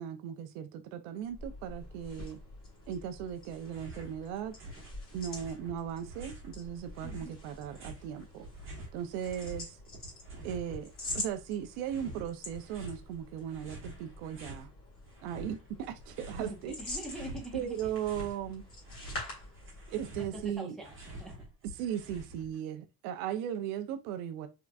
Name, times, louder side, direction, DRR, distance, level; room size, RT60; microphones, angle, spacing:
voice 1, 0.0-2.4 2.9-4.5 5.1-8.5 8.9-9.8 10.4-14.7 15.2-16.7 17.5-18.6 19.9-20.8 21.8-24.5, right 9 dB, 75° right, 0.6 m, -37 dB
sound 1, 1.2-20.1, left 2 dB, 30° left, 1.7 m, -46 dB
sound 2, 3.6-4.2 4.4-6.5 6.9-9.6 9.9-11.4 11.8-13.0 13.5-14.7 15.1-16.6 16.9-18.4 18.7-22.6, right 1 dB, 25° right, 1.4 m, -47 dB
voice 2, 16.4-17.9 20.2-21.4, equal, ahead, 1.0 m, -44 dB
3.8 x 3.4 x 2.3 m
cardioid pair, 155°, 45 cm